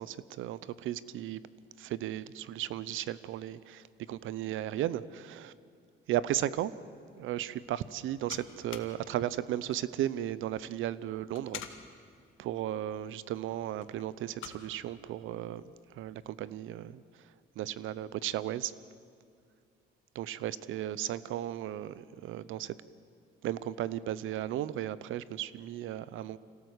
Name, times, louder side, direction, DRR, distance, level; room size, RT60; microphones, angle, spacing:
voice 1, 0.0-1.4 1.8-5.5 6.1-6.7 7.2-11.6 12.4-15.6 16.0-17.0 17.6-18.7 20.1-22.7 23.4-26.4, right 12 dB, 85° right, 18 dB, 0.8 m, -35 dB
sound 1, 7.1-16.3, left 10 dB, 90° left, 1.6 m, -52 dB
25.5 x 17.5 x 8.1 m, 2.3 s
cardioid pair, 90°, 20 cm